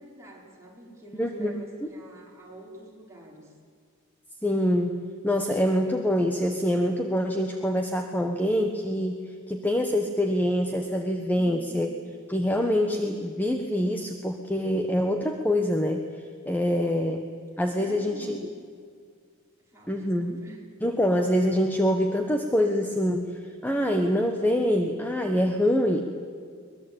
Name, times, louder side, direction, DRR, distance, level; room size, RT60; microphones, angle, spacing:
voice 1, 0.0-3.5 11.3-11.8 16.7-17.0 17.8-18.5 19.7-20.6, equal, 15° right, -3 dB, 5.0 m, -46 dB
voice 2, 1.2-1.5 1.8-1.9 4.4-5.0 5.2-9.2 9.5-11.9 12.3-16.0 16.4-17.2 17.6-18.4 19.9-20.4 20.8-23.3 23.6-26.0, equal, 10° left, 4 dB, 1.2 m, -25 dB
22.5 x 21.0 x 8.8 m, 2.1 s
head